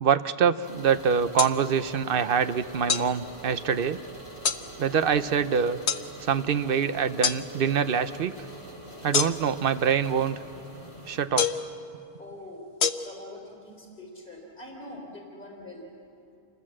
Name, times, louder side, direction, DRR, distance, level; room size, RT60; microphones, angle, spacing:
voice 1, 0.0-4.0 4.8-5.8 6.2-8.3 9.0-10.4 11.1-11.5, right 7 dB, 60° right, 12 dB, 0.9 m, -25 dB
sound 1, 0.6-11.3, right 1 dB, 85° right, 8.1 m, -44 dB
sound 2, 1.4-1.5 2.9-3.1 4.4-4.6 5.9-6.0 7.2-7.4 9.1-9.6 11.4-11.7 12.8-12.9, left 7 dB, 80° left, 1.2 m, -25 dB
voice 2, 10.8-11.2 12.2-12.7 13.0-15.9, left 1 dB, 55° left, 0 dB, 3.7 m, -44 dB
27.5 x 21.0 x 7.5 m, 2.6 s
omnidirectional pair, 1.1 m